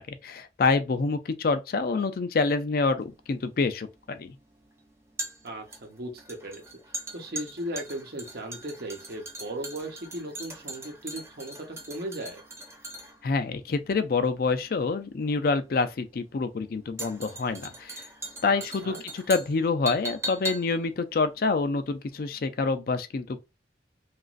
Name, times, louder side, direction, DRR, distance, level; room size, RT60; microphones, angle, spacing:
voice 1, 0.0-4.3 13.2-18.1 18.4-23.4, left 4 dB, 55° left, 0.4 m, -27 dB
sound 1, 3.0-22.3 22.6-22.7, right 1 dB, 15° right, 0.5 m, -40 dB
voice 2, 5.4-6.6 7.1-12.4 18.5-19.0, right 1 dB, 55° right, 0.8 m, -37 dB
3.0 x 2.5 x 2.4 m
head